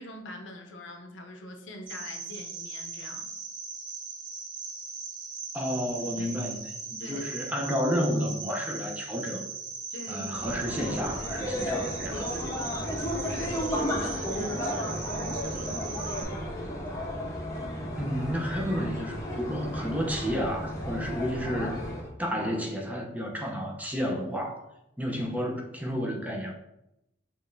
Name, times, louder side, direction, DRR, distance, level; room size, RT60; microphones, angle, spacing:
voice 1, 0.0-3.3 6.0-6.4 7.0-7.2 9.9-10.3 12.1-12.4 13.3-16.4, left 1 dB, 75° left, 4 dB, 0.7 m, -43 dB
Cricket, 1.9-16.2, right 5 dB, 45° right, 1.2 m, -39 dB
voice 2, 5.5-6.6 6.9-9.4 10.1-12.1 18.0-21.8 22.2-24.6 25.0-26.5, equal, 10° right, 0 dB, 0.7 m, -31 dB
sound 1, 10.3-22.1, equal, 15° left, 0.9 m, -33 dB
6.2 x 3.1 x 2.6 m, 0.86 s
head